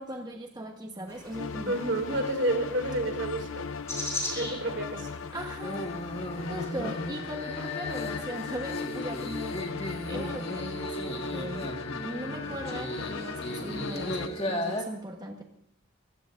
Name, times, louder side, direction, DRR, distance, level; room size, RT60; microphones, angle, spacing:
voice 1, 0.0-1.8 5.3-5.9 6.5-9.7 10.0-11.7 12.0-15.4, right 1 dB, 20° right, 3 dB, 1.1 m, -39 dB
sound 1, 1.1-7.3, left 1 dB, 15° left, 4.6 m, -41 dB
sound 2, 1.3-14.3, left 5 dB, 85° left, 0.6 m, -38 dB
voice 2, 1.7-3.7 4.3-5.1, right 1 dB, 65° right, 5 dB, 2.3 m, -30 dB
sound 3, 5.6-14.8, left 1 dB, 30° left, 1.6 m, -36 dB
25.5 x 15.5 x 2.5 m, 0.76 s
head